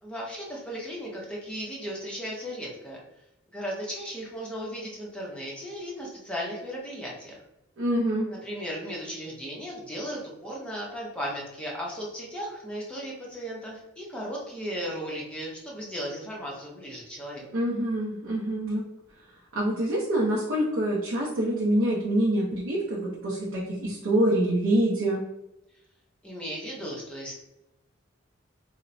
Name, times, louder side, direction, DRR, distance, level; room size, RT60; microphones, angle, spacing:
voice 1, 0.0-3.0 3.5-7.3 8.3-17.5 26.2-27.3, equal, 5° left, -4 dB, 0.5 m, -36 dB
voice 2, 7.8-8.3 17.5-18.9 19.5-25.2, right 1 dB, 80° right, -4 dB, 0.5 m, -26 dB
2.9 x 2.0 x 2.5 m, 0.89 s
head